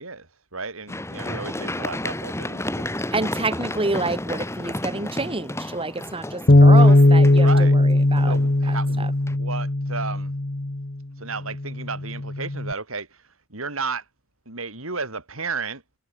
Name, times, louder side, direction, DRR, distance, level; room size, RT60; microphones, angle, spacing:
voice 1, 0.0-2.9 6.7-7.8 8.3-10.3 11.2-13.2 13.5-14.0 14.5-15.8, right 4 dB, 85° right, 5.2 m, -33 dB
Run, 0.9-8.8 9.3-9.4, left 1 dB, 15° left, 2.8 m, -32 dB
voice 2, 3.1-8.3 8.7-9.1, right 3 dB, 25° right, 2.7 m, -28 dB
Bass guitar, 6.5-10.9 11.6-12.7, left 1 dB, 45° left, 1.3 m, -17 dB
head